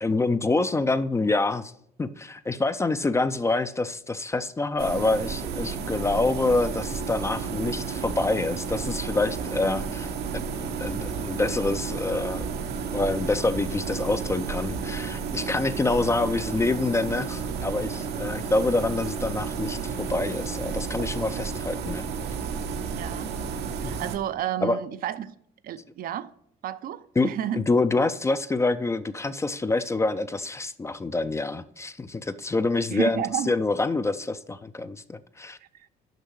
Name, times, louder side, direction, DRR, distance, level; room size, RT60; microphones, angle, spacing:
voice 1, 0.0-1.7 2.0-12.5 12.9-22.1 23.8-24.0 24.6-24.8 27.2-35.6, left 3 dB, 15° left, 0.4 m, -26 dB
sound 1, 4.8-24.2, right 5 dB, 80° right, 0.9 m, -32 dB
voice 2, 22.9-23.3 23.8-25.3 25.6-26.3 26.6-27.6 32.9-33.5, right 11 dB, 60° right, 0.5 m, -31 dB
6.6 x 5.4 x 6.2 m
cardioid pair, 110°, 17 cm